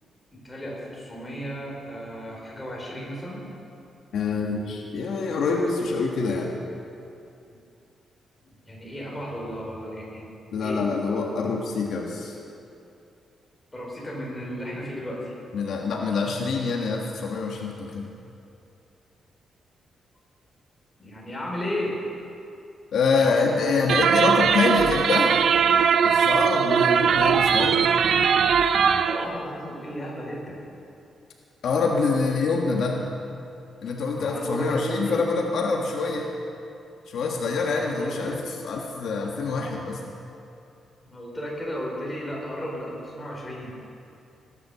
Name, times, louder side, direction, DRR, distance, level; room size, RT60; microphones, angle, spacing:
voice 1, 0.3-3.4 8.7-10.3 10.6-10.9 13.7-15.3 21.0-22.0 26.7-27.2 29.0-30.6 34.2-35.2 37.9-38.4 41.0-43.9, equal, 10° left, -4 dB, 4.2 m, -34 dB
voice 2, 4.1-6.5 10.5-12.4 15.5-18.1 22.9-25.3 26.0-27.8 31.6-33.0 33.8-36.3 37.1-38.4 38.6-40.0, left 4 dB, 70° left, 0 dB, 1.5 m, -25 dB
sound 1, 23.9-29.2, right 7 dB, 60° right, 0.5 m, -20 dB
18.5 x 10.0 x 6.9 m, 2.7 s
wide cardioid pair, 150°, 0 cm